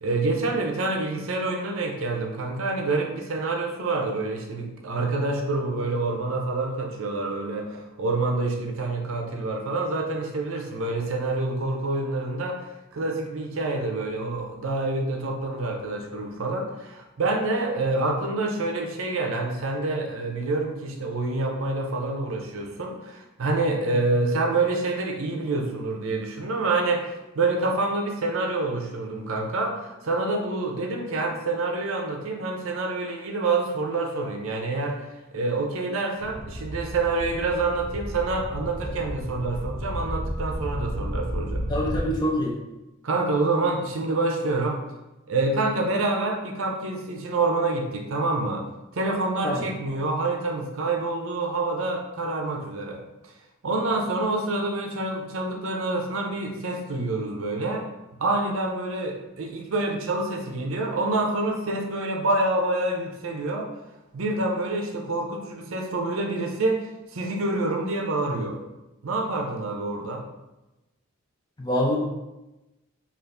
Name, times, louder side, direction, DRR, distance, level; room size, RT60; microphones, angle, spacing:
voice 1, 0.0-35.1 35.3-41.7 43.0-44.8 45.3-48.7 48.9-53.3 53.6-57.9 58.2-63.7 64.1-68.6 69.0-70.2, right 2 dB, 65° right, 2 dB, 0.6 m, -27 dB
sound 1, 36.2-42.1, equal, 45° left, 1.3 m, -32 dB
voice 2, 41.7-42.5 49.4-49.6 71.6-72.0, equal, 20° left, -2 dB, 0.5 m, -25 dB
3.9 x 2.4 x 3.3 m, 1.0 s
head